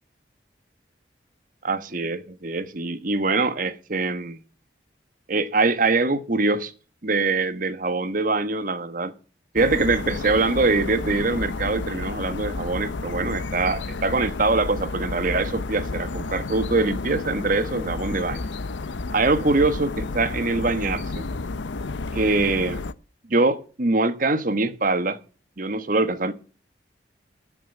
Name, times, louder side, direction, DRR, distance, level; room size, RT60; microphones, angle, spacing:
voice 1, 1.6-4.4 5.3-6.7 7.0-9.1 9.5-18.4 19.1-21.2 22.1-22.9 23.3-25.2 25.6-26.3, right 3 dB, 45° right, 1.2 m, -23 dB
sound 1, 9.6-22.9, left 3 dB, 80° left, 0.7 m, -31 dB
13.0 x 6.1 x 9.1 m
head